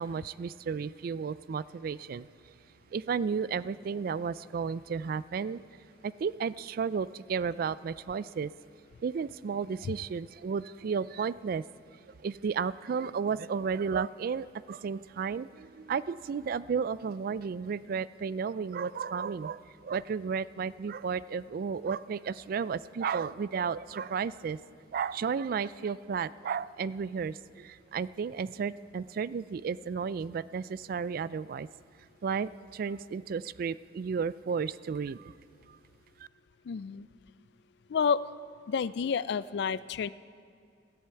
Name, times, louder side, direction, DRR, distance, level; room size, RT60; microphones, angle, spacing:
voice 1, 0.0-2.3 2.9-5.6 6.0-8.5 9.0-11.6 12.2-24.6 24.9-31.7 32.2-35.3, right 6 dB, 50° right, 18 dB, 0.3 m, -33 dB
voice 2, 36.7-37.1 37.9-38.2 38.7-40.1, left 6 dB, 65° left, 17 dB, 0.3 m, -29 dB
17.0 x 13.0 x 4.6 m, 2.4 s
head